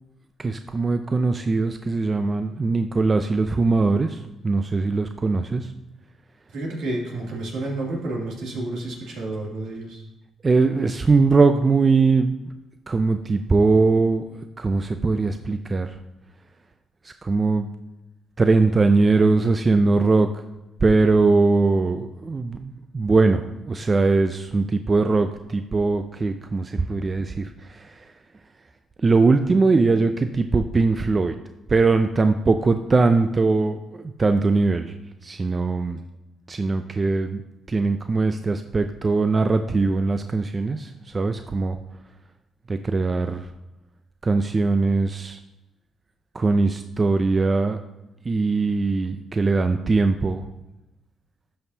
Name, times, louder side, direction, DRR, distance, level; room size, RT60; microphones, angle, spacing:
voice 1, 0.4-4.2 4.4-5.7 10.4-12.3 12.9-14.2 14.6-15.9 17.0-17.7 18.4-20.3 20.8-27.9 29.0-31.4 31.7-34.9 35.2-36.0 36.5-37.4 37.7-41.8 42.7-43.5 44.2-45.4 46.3-47.8 48.3-50.4, right 3 dB, 30° right, 8 dB, 0.4 m, -21 dB
voice 2, 6.5-10.1, right 2 dB, 75° right, -2 dB, 2.5 m, -30 dB
12.5 x 5.4 x 2.8 m, 0.96 s
cardioid pair, 90°, 0 cm